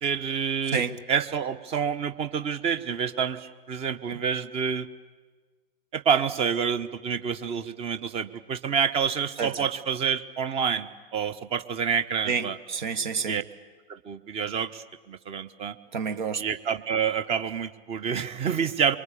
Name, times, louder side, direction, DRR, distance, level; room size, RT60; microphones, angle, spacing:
voice 1, 0.0-0.8 1.1-4.9 5.9-12.6 13.3-13.4 13.9-15.8 16.4-19.0, right 7 dB, 20° right, 1.0 m, -28 dB
voice 2, 12.3-13.4 15.9-16.4, right 6 dB, 55° right, 1.2 m, -29 dB
24.0 x 23.5 x 8.4 m
figure-of-eight pair, 105°, 29 cm